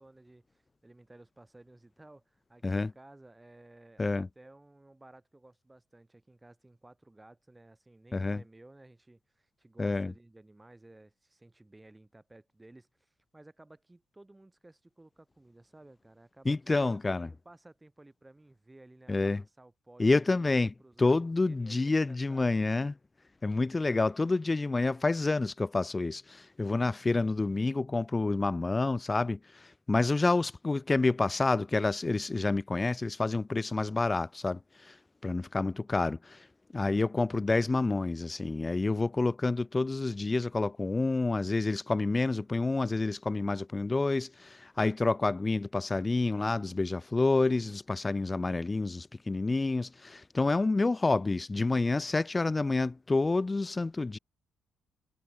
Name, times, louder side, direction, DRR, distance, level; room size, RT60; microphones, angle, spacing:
voice 1, 0.0-17.0 17.4-22.6, right 2 dB, 15° right, 7.3 m, -56 dB
voice 2, 9.8-10.1 16.4-17.3 19.1-19.4 20.0-23.0 23.4-35.0 35.2-36.5 36.7-54.2, left 3 dB, 20° left, 1.1 m, -28 dB
cardioid pair, 90°, 0 cm